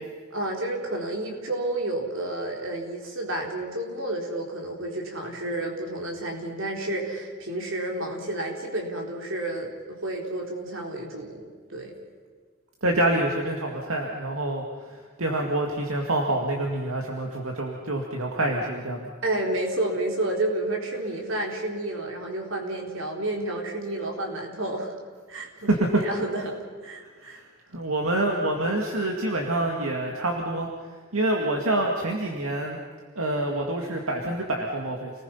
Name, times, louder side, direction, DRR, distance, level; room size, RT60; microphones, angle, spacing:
voice 1, 0.3-11.4 11.7-11.9 19.2-25.0 25.3-26.6 26.8-27.4, right 1 dB, 60° right, 1 dB, 4.0 m, -30 dB
voice 2, 12.8-19.1 25.4-26.0 27.0-27.5 27.7-30.7 31.1-32.8 33.2-35.1, right 1 dB, 80° right, 1 dB, 2.2 m, -27 dB
29.0 x 19.5 x 5.7 m, 1.5 s
head